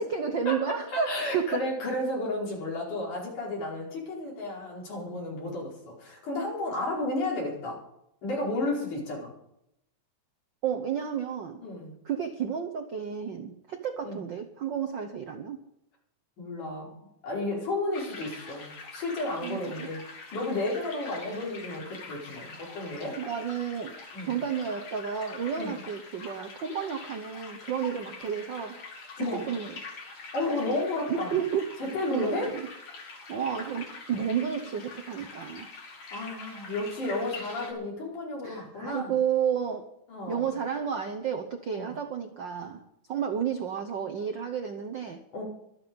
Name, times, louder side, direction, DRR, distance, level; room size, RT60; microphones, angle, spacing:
voice 1, 0.0-1.7 10.6-11.6 12.0-15.6 19.4-19.9 23.2-24.0 24.3-28.8 29.3-29.8 31.1-31.8 32.1-32.7 33.3-35.7 38.4-39.9 40.3-45.2, right 7 dB, 70° right, 5 dB, 1.1 m, -31 dB
voice 2, 0.9-7.8 8.2-9.3 11.6-11.9 14.0-14.2 16.4-16.9 17.2-20.0 20.3-23.2 24.1-24.3 25.6-25.7 29.2-29.5 30.3-31.4 31.8-32.5 36.1-39.1 40.1-40.5 41.7-41.9 45.3-45.4, left 2 dB, 80° left, -3 dB, 6.4 m, -32 dB
sound 1, 17.9-37.7, left 4 dB, 60° left, 3.6 m, -44 dB
24.0 x 8.0 x 5.3 m, 0.80 s
omnidirectional pair, 3.5 m